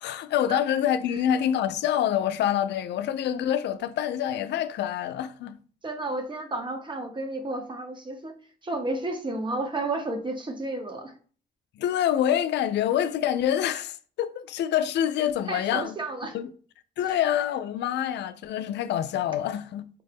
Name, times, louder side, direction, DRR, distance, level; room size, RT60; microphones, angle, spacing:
voice 1, 0.0-5.6 11.8-16.0 16.3-16.5 17.0-19.9, left 10 dB, 70° left, 0.4 m, -26 dB
voice 2, 5.8-11.1 15.5-16.3 17.0-17.2, right 2 dB, 25° right, 0.8 m, -32 dB
4.7 x 2.1 x 3.3 m
cardioid pair, 90°, 19 cm